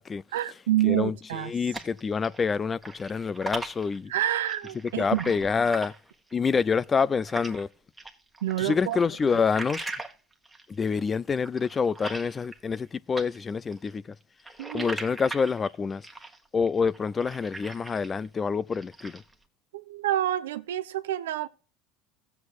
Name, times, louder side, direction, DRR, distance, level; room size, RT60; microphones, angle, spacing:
voice 1, 0.3-1.5 4.1-5.3 8.4-9.0 14.6-14.9 19.7-21.5, right 13 dB, 90° right, 0.7 m, -28 dB
voice 2, 0.8-4.1 5.0-5.9 6.3-7.7 8.6-9.9 10.7-14.2 14.7-16.0 16.5-19.2, left 5 dB, 25° left, 0.4 m, -27 dB
sound 1, 1.2-2.5 2.8-7.6 8.0-12.9 13.1-18.3 18.6-19.3, right 2 dB, 10° right, 1.4 m, -40 dB
15.5 x 7.9 x 2.4 m
supercardioid pair, 100°, 0 cm